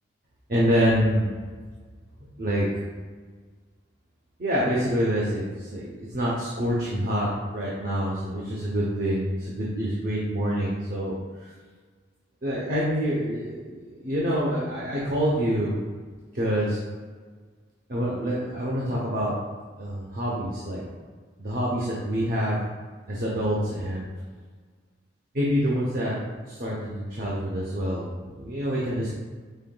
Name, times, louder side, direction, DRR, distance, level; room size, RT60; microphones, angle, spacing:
voice 1, 0.5-1.3 2.4-2.7 4.4-7.3 7.5-11.1 11.4-11.5 12.4-15.8 16.3-16.8 17.9-19.3 19.8-20.8 21.4-22.6 23.1-24.1 25.3-26.1 26.5-29.1, equal, 50° right, -5 dB, 0.7 m, -26 dB
5.5 x 3.7 x 2.3 m, 1.5 s
head